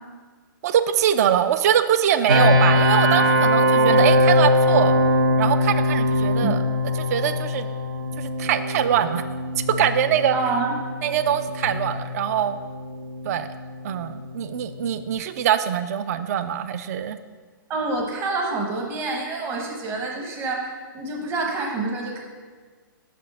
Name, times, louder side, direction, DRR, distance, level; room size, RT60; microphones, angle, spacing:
voice 1, 0.6-4.9 5.4-6.6 7.0-7.7 8.2-9.2 9.8-10.4 11.0-12.6 13.2-13.5 13.8-17.2, right 10 dB, 45° right, 11 dB, 0.3 m, -23 dB
sound 1, 2.3-15.1, left 1 dB, 80° right, 1.0 m, -22 dB
voice 2, 3.7-4.1 6.4-6.6 10.3-10.8 17.7-22.2, right 3 dB, 20° right, 1 dB, 0.9 m, -27 dB
5.9 x 4.3 x 5.4 m, 1.5 s
hypercardioid pair, 160°, 12 cm